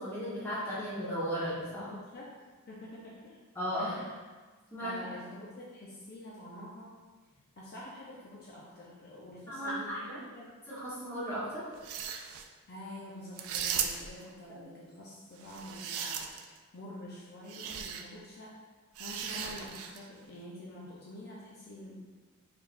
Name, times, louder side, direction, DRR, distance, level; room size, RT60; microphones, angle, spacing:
voice 1, 0.0-1.9 3.5-4.0 4.7-4.9 9.5-10.2 10.7-11.6 14.5-14.6, equal, 10° left, -10 dB, 1.3 m, -35 dB
voice 2, 1.8-2.3 2.7-3.4 3.7-4.2 4.8-6.9 7.6-10.5 12.7-18.6 19.0-22.0, left 1 dB, 45° left, -5 dB, 0.6 m, -47 dB
sound 1, 11.7-12.5 13.4-14.2 15.4-16.6 17.5-18.0 19.0-20.1, right 8 dB, 75° right, 0.4 m, -37 dB
4.6 x 3.5 x 2.5 m, 1.4 s
head